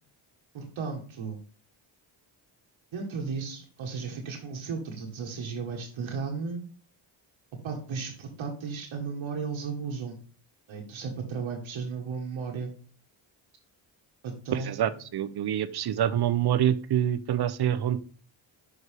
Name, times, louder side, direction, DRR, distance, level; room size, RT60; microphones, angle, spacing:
voice 1, 0.5-1.4 2.9-6.6 7.6-10.2 10.7-12.7 14.2-15.0, right 5 dB, 70° right, 1 dB, 1.4 m, -35 dB
voice 2, 14.5-18.0, right 10 dB, 50° right, 14 dB, 0.6 m, -26 dB
6.5 x 4.7 x 3.4 m, 0.40 s
cardioid pair, 65°, 49 cm